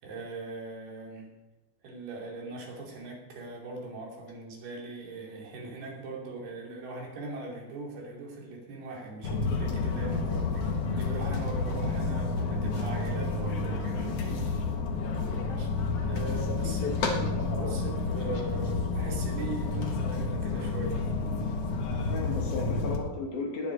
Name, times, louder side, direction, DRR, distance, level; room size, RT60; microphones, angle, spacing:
voice 1, 0.0-1.3 1.8-14.6 15.6-15.7 16.1-21.0, right 3 dB, 90° right, -1 dB, 4.8 m, -40 dB
sound 1, 9.2-23.0, left 3 dB, 50° left, 2.0 m, -30 dB
voice 2, 16.3-17.7 21.9-23.7, left 3 dB, 75° left, 0 dB, 4.3 m, -36 dB
19.5 x 7.9 x 5.2 m, 1.1 s
omnidirectional pair, 4.3 m